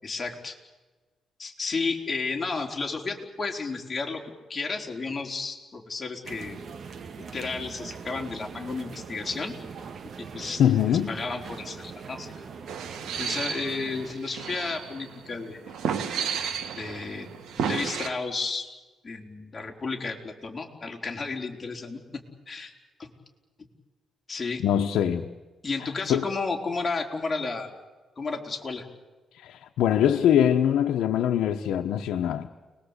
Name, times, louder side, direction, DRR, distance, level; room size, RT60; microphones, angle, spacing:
voice 1, 0.0-0.6 1.4-4.2 4.5-6.6 7.2-9.5 10.3-12.3 13.2-15.8 16.8-17.3 17.6-18.7 19.0-22.2 22.5-22.7 23.0-23.1 24.3-24.6 25.6-27.7 28.2-28.8, left 4 dB, 25° left, 1 dB, 4.3 m, -32 dB
sound 1, 6.2-14.2, right 5 dB, 55° right, 1.7 m, -42 dB
voice 2, 10.6-11.1 24.6-25.3 26.1-26.3 29.3-32.5, left 10 dB, 90° left, 2 dB, 1.2 m, -23 dB
sound 2, 12.7-18.1, right 7 dB, 85° right, 2.1 m, -33 dB
30.0 x 21.5 x 8.4 m, 1.3 s
cardioid pair, 105°, 0 cm